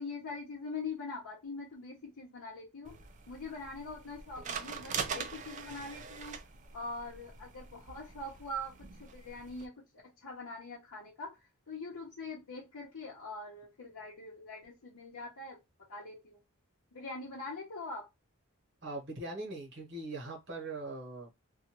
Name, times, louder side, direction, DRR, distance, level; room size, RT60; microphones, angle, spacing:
voice 1, 0.0-3.0 3.3-6.4 6.7-9.8 10.2-11.4 11.7-15.6 15.9-16.4 16.9-18.1, left 2 dB, 90° left, 0.8 m, -43 dB
sound 1, 2.8-9.7, right 6 dB, 35° right, 0.3 m, -43 dB
voice 2, 18.8-21.3, right 2 dB, 50° right, 1.1 m, -41 dB
2.6 x 2.3 x 2.9 m
head